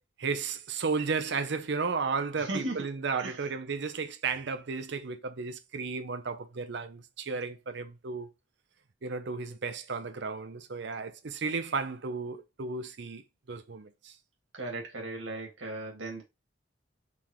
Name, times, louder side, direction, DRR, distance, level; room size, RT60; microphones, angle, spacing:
voice 1, 0.2-8.3 9.0-13.2 13.5-14.2, right 4 dB, 65° right, 0.6 m, -34 dB
voice 2, 2.4-2.8 3.2-3.3 14.5-16.2, right 2 dB, 80° right, 1.9 m, -36 dB
4.0 x 3.4 x 3.0 m
head